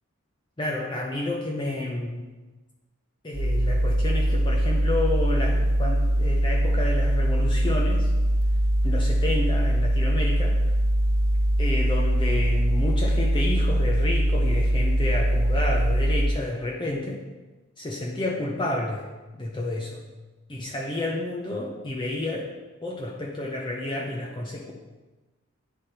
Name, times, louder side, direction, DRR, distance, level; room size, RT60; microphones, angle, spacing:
voice 1, 0.6-2.3 3.2-8.1 8.8-10.6 11.6-17.2 17.8-19.1 19.3-20.0 20.5-22.5 22.8-24.7, left 2 dB, 20° left, -2 dB, 0.6 m, -30 dB
sound 1, 3.3-16.3, right 1 dB, 50° right, 1.1 m, -22 dB
10.5 x 3.5 x 4.2 m, 1.2 s
head